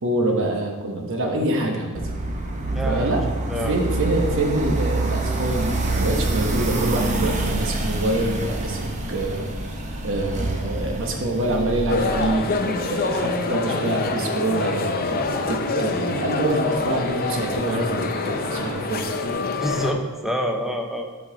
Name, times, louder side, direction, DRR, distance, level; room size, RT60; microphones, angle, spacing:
voice 1, 0.0-2.0 2.8-3.2 3.7-8.8 9.1-9.5 10.0-12.5 12.8-19.0, right 1 dB, 60° right, 1 dB, 1.0 m, -25 dB
sound 1, 2.0-12.3, right 2 dB, 35° right, 0.7 m, -26 dB
voice 2, 2.7-3.2 3.5-3.8 19.6-21.1, equal, ahead, 2 dB, 0.7 m, -26 dB
sound 2, 11.9-19.9, left 3 dB, 45° left, 0.5 m, -25 dB
7.8 x 5.3 x 3.8 m, 1.4 s
head